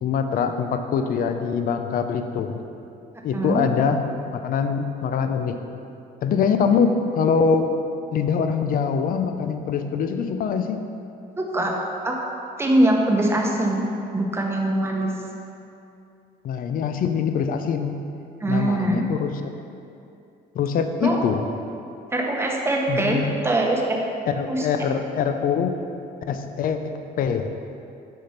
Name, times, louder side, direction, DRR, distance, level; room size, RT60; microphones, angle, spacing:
voice 1, 0.0-2.6 3.2-4.1 4.3-5.6 6.2-7.7 8.1-10.8 16.4-18.0 18.5-19.5 20.5-21.4 22.9-23.3 24.3-25.7 26.3-27.5, left 6 dB, 55° left, 7 dB, 0.5 m, -23 dB
voice 2, 3.3-3.6 11.4-11.7 12.0-12.2 12.6-13.8 14.1-15.1 18.4-19.0 21.0-21.2 22.1-23.2 23.4-24.0 24.4-24.7, right 1 dB, 15° right, 0 dB, 1.0 m, -22 dB
6.3 x 4.2 x 5.7 m, 2.7 s
cardioid pair, 110°, 17 cm